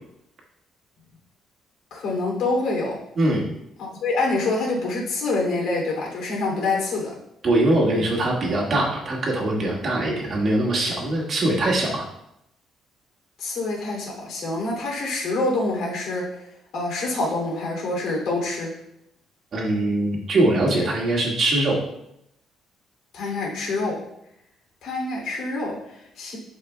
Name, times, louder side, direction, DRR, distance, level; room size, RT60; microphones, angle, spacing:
voice 1, 1.9-3.0 3.8-7.1 13.4-16.4 16.7-18.7 23.1-24.0 24.8-26.4, left 2 dB, 65° left, -2 dB, 2.7 m, -26 dB
voice 2, 3.2-3.5 7.4-12.0 19.5-21.8, right 1 dB, 40° right, -3 dB, 1.8 m, -22 dB
11.5 x 4.9 x 2.2 m, 0.79 s
cardioid pair, 155°, 0 cm